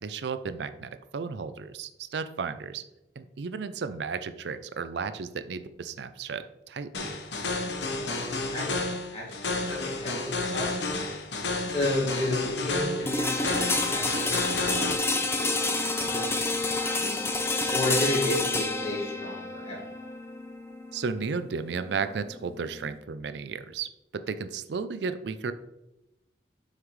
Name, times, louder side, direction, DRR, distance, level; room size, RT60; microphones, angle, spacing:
voice 1, 0.0-2.8 3.2-7.2 20.9-25.5, right 5 dB, 75° right, 12 dB, 0.5 m, -34 dB
sound 1, 6.9-15.0, left 3 dB, 80° left, 1.1 m, -31 dB
voice 2, 7.9-8.8 9.1-11.0 11.7-16.5 16.8-17.2 17.7-19.8, left 1 dB, 35° left, -5 dB, 2.0 m, -33 dB
sound 2, 13.1-23.0, left 3 dB, 15° left, 0.6 m, -29 dB
7.8 x 5.7 x 3.2 m, 0.92 s
head